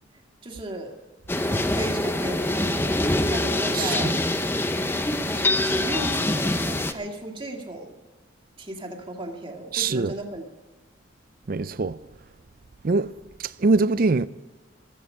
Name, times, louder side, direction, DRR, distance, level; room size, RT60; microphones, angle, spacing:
voice 1, 0.4-0.9 1.7-4.2 5.3-8.0 8.6-10.4, right 1 dB, 30° right, 2.0 m, -35 dB
sound 1, 1.3-6.9, left 1 dB, 10° left, 0.7 m, -24 dB
voice 2, 3.7-4.1 9.7-10.1 11.5-12.0 12.8-14.3, right 3 dB, 50° right, 0.5 m, -23 dB
15.5 x 14.0 x 5.6 m
head